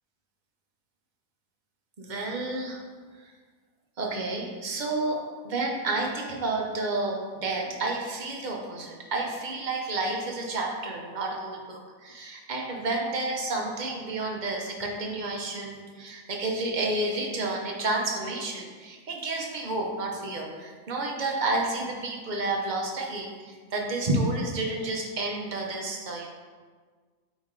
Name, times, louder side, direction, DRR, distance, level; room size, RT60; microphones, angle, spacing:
voice 1, 2.0-2.8 4.0-5.2 5.4-26.3, right 2 dB, 40° right, 0 dB, 0.8 m, -30 dB
8.6 x 3.2 x 3.7 m, 1.5 s
omnidirectional pair, 1.5 m